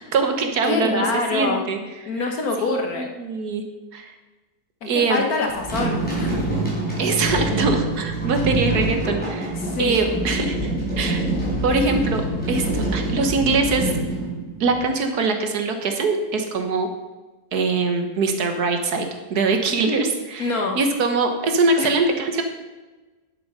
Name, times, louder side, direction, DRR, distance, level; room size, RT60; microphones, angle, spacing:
voice 1, 0.1-1.1 1.3-1.8 2.9-3.6 3.9-4.1 4.8-5.2 7.0-11.2 11.6-13.9 14.6-16.9 17.5-22.4, right 3 dB, 75° right, 5 dB, 1.7 m, -23 dB
voice 2, 0.7-1.6 2.1-3.1 4.8-6.4 9.6-10.1 20.4-20.8 21.8-21.9, left 3 dB, 65° left, 2 dB, 1.6 m, -25 dB
sound 1, 5.5-14.9, right 1 dB, 5° left, 4.4 m, -25 dB
10.5 x 7.7 x 5.5 m, 1.2 s
omnidirectional pair, 1.7 m